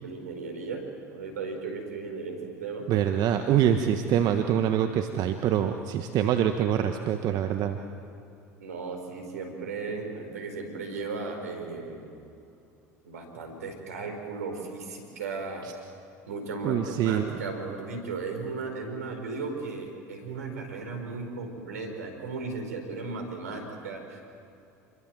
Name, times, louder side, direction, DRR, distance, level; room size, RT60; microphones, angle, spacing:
voice 1, 0.0-2.9 8.6-12.1 13.0-15.7 16.3-24.2, right 4 dB, 85° right, 4 dB, 4.5 m, -36 dB
voice 2, 2.9-7.8 16.6-17.4, right 9 dB, 55° right, 7 dB, 1.3 m, -25 dB
28.0 x 22.5 x 7.6 m, 2.7 s
hypercardioid pair, 75°, 8 cm